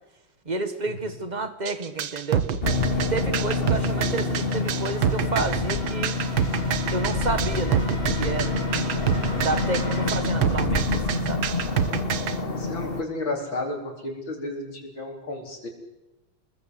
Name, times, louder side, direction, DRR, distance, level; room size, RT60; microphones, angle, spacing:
voice 1, 0.5-2.5 2.9-6.1 6.9-7.8 8.2-8.9 9.4-11.5 11.9-12.0, right 3 dB, 20° right, 10 dB, 1.7 m, -30 dB
sound 1, 1.7-12.4, right 9 dB, 75° right, 2.0 m, -27 dB
sound 2, 2.5-10.2, left 1 dB, 45° left, 5.2 m, -39 dB
sound 3, 2.6-13.0, left 3 dB, 30° left, 2.0 m, -27 dB
voice 2, 3.9-4.2 12.5-15.7, left 2 dB, 70° left, 2 dB, 5.1 m, -33 dB
27.5 x 21.0 x 7.9 m, 1.0 s
omnidirectional pair, 2.2 m